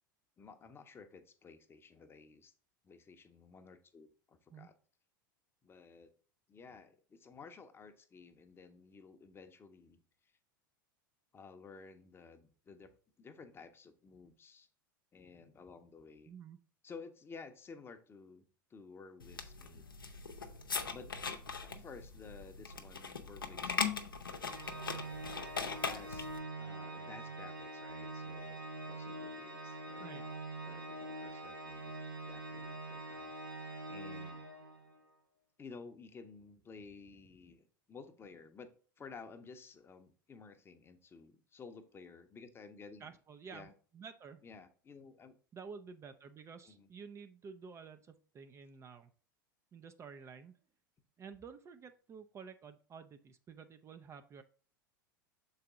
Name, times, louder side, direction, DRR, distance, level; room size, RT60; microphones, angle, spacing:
voice 1, 0.4-2.5 2.8-4.7 5.6-6.1 6.5-10.0 11.3-12.9 13.2-14.7 15.1-16.3 16.8-18.4 18.7-19.8 20.9-21.1 21.6-24.0 25.6-26.3 26.6-31.9 32.3-34.4 35.6-43.1 43.5-43.7 44.4-45.4 46.6-46.9, left 4 dB, 20° left, 9 dB, 0.7 m, -54 dB
voice 2, 16.3-16.6 30.0-30.2 43.0-44.4 45.5-49.1 49.7-50.5 51.2-54.4, right 6 dB, 25° right, 8 dB, 0.4 m, -51 dB
sound 1, 19.2-26.4, left 5 dB, 85° left, 0.6 m, -40 dB
Organ, 24.4-35.0, right 2 dB, 90° right, 1.1 m, -44 dB
6.6 x 4.1 x 3.6 m, 0.40 s
figure-of-eight pair, 85°, 11 cm